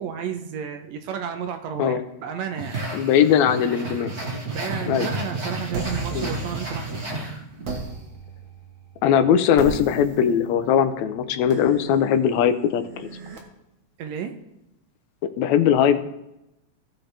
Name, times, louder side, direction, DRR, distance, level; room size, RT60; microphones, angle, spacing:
voice 1, 0.0-2.8 4.5-6.9 14.0-14.4, right 7 dB, 75° right, 6 dB, 1.9 m, -32 dB
sound 1, 2.6-7.8, right 2 dB, 30° right, 1.6 m, -31 dB
voice 2, 2.9-4.1 4.9-5.1 6.1-6.3 9.0-13.1 15.4-16.0, left 8 dB, 80° left, 10 dB, 1.9 m, -20 dB
sound 2, 5.7-7.1 7.6-13.4, right 3 dB, 50° right, 1.8 m, -37 dB
16.5 x 6.4 x 3.4 m, 0.89 s
omnidirectional pair, 3.4 m